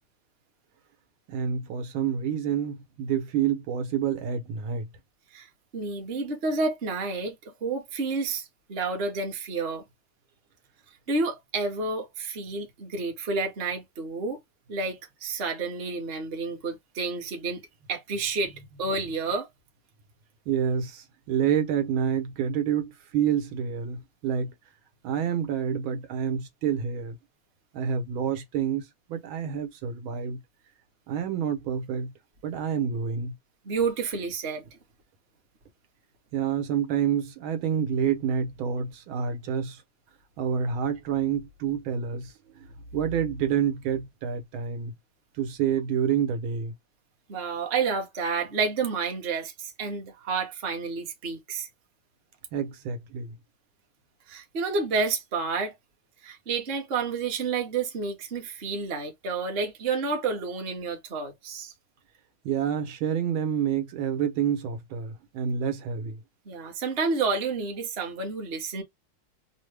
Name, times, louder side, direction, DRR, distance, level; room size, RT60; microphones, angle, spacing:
voice 1, 1.3-4.9 20.5-24.5 25.0-27.2 27.7-30.4 31.1-32.1 32.4-33.4 36.3-39.8 40.4-42.7 42.9-44.9 45.4-46.7 52.5-53.3 62.4-66.2, right 8 dB, 85° right, 1.6 m, -28 dB
voice 2, 5.3-9.8 11.1-14.4 14.7-17.6 17.9-19.5 33.7-34.7 47.3-51.7 54.3-55.7 56.2-61.7 66.5-68.8, right 4 dB, 40° right, 0.9 m, -30 dB
3.5 x 2.0 x 3.2 m
omnidirectional pair, 2.2 m